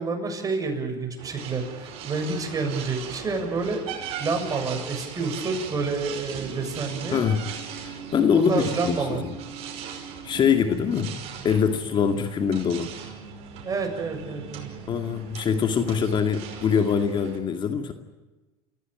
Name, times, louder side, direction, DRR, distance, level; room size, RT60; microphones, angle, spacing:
voice 1, 0.0-3.8 4.2-7.2 8.5-9.2 13.6-14.7, right 4 dB, 30° right, 4 dB, 7.3 m, -28 dB
sound 1, 1.2-17.4, right 7 dB, 60° right, 5.5 m, -39 dB
voice 2, 7.1-7.4 7.8-9.4 10.2-11.1 11.4-12.9 14.9-17.9, left 7 dB, 40° left, 6 dB, 2.3 m, -23 dB
29.0 x 16.5 x 9.1 m, 1.1 s
supercardioid pair, 95°, 12 cm